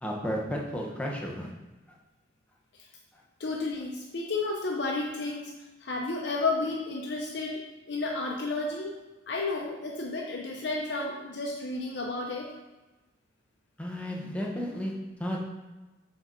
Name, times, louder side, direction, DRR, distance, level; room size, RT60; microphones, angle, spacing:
voice 1, 0.0-1.5 13.8-14.9 15.2-15.5, equal, 5° left, -2 dB, 1.0 m, -33 dB
voice 2, 3.4-5.5 5.8-7.6 7.9-9.0 9.3-12.5, left 3 dB, 65° left, 0 dB, 0.7 m, -32 dB
6.9 x 4.5 x 4.0 m, 1.1 s
head